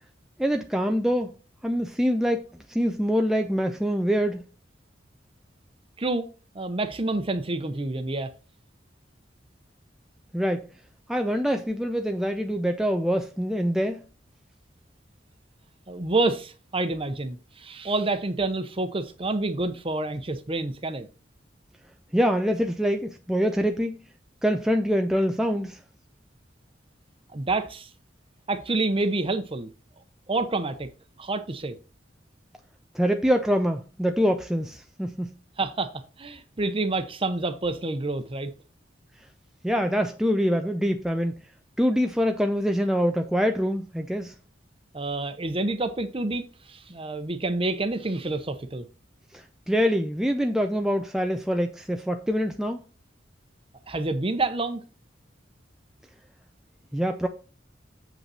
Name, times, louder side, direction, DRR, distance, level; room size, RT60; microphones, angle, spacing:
voice 1, 0.4-1.3 1.6-4.5 10.3-10.7 11.1-14.0 22.1-24.0 24.4-25.8 32.9-35.4 39.6-41.3 41.8-44.3 49.3-52.8 56.9-57.3, equal, 5° right, 0.5 m, -25 dB
voice 2, 6.5-8.3 15.9-21.1 27.3-27.9 28.5-29.7 30.3-30.9 31.2-31.8 35.6-35.9 36.2-38.5 44.9-48.9 53.9-54.8, right 2 dB, 30° right, 0.9 m, -28 dB
7.5 x 5.5 x 4.2 m
head